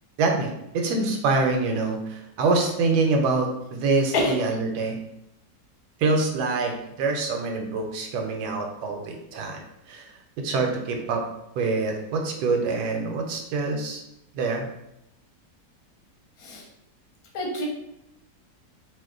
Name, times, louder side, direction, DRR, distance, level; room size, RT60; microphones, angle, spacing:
voice 1, 0.2-5.0 6.0-9.6 9.9-10.0 10.4-11.2 11.6-14.0 14.3-14.7, right 3 dB, 80° right, 2 dB, 1.1 m, -25 dB
voice 2, 17.3-17.7, left 2 dB, 70° left, -1 dB, 1.1 m, -26 dB
2.7 x 2.1 x 3.5 m, 0.83 s
omnidirectional pair, 1.7 m